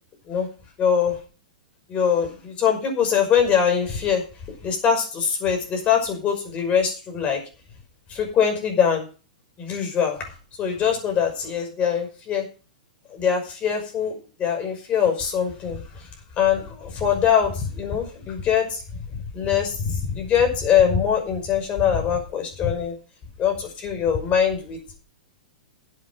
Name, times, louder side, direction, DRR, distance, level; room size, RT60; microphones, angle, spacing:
voice 1, 0.8-1.2 1.9-4.2 4.6-7.4 8.1-9.1 9.6-10.2 10.6-12.4 13.1-14.1 14.4-15.8 16.4-18.8 19.3-22.9 23.4-24.9, left 7 dB, 30° left, 3 dB, 5.7 m, -22 dB
11.5 x 8.3 x 6.1 m, 0.35 s
hypercardioid pair, 110°, 4 cm